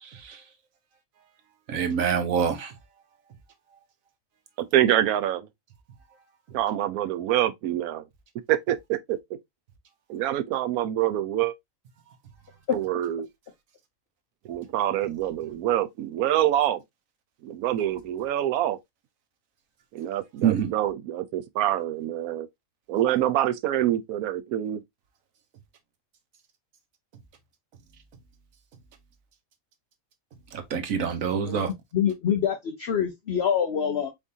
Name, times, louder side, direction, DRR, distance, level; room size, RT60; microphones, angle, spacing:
voice 1, 0.0-0.4 1.7-2.7 20.4-20.7 30.5-31.7, right 7 dB, 70° right, 1.3 m, -26 dB
voice 2, 4.6-5.5 6.5-8.0 8.5-9.2 10.1-11.5 12.7-13.3 14.4-16.8 17.4-18.8 19.9-22.5 22.9-24.8, right 12 dB, 90° right, 1.0 m, -26 dB
voice 3, 31.9-34.1, left 8 dB, 55° left, 0.9 m, -25 dB
4.6 x 3.6 x 2.6 m
omnidirectional pair, 1.5 m